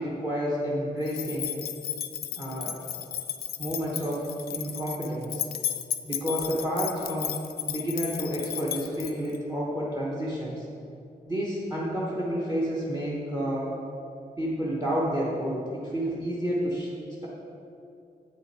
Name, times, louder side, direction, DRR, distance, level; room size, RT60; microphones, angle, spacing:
voice 1, 0.0-1.6 2.4-2.8 3.6-5.5 6.0-10.7 11.3-13.7 14.4-16.9, equal, 20° right, -4 dB, 0.9 m, -30 dB
sound 1, 1.1-9.4, left 10 dB, 85° left, 0.4 m, -34 dB
7.9 x 5.6 x 4.6 m, 2.5 s
wide cardioid pair, 160°, 16 cm